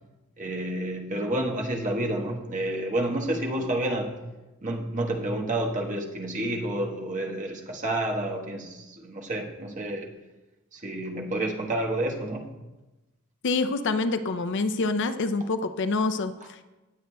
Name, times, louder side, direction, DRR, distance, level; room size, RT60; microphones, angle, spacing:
voice 1, 0.4-4.2 4.6-10.1 10.7-12.5, right 1 dB, 35° right, 0 dB, 1.2 m, -29 dB
voice 2, 13.4-16.6, left 3 dB, 55° left, 9 dB, 0.5 m, -26 dB
18.5 x 8.0 x 2.2 m, 1.1 s
head